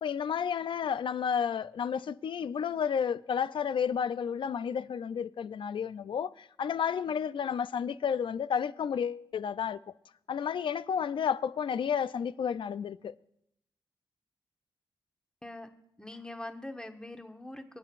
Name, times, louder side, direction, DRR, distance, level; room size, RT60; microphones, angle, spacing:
voice 1, 0.0-9.8 10.3-13.1, left 7 dB, 70° left, 0.4 m, -31 dB
voice 2, 16.0-17.8, left 1 dB, 10° left, 1.0 m, -43 dB
25.0 x 8.8 x 2.5 m
wide cardioid pair, 110°, 9 cm